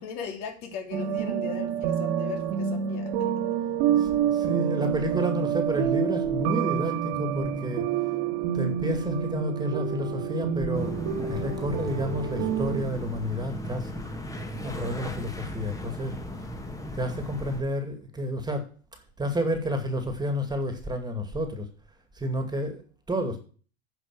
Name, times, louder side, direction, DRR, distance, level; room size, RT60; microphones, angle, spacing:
voice 1, 0.0-3.3, left 6 dB, 60° left, 3.3 m, -38 dB
sound 1, 0.9-12.8, right 8 dB, 60° right, 1.9 m, -28 dB
voice 2, 3.9-7.9 8.5-14.0 14.6-16.2 16.9-21.7 22.1-23.4, equal, 10° right, 2.2 m, -31 dB
sound 2, 10.7-17.6, left 1 dB, 10° left, 1.6 m, -36 dB
9.5 x 5.9 x 7.5 m
supercardioid pair, 115°, 33 cm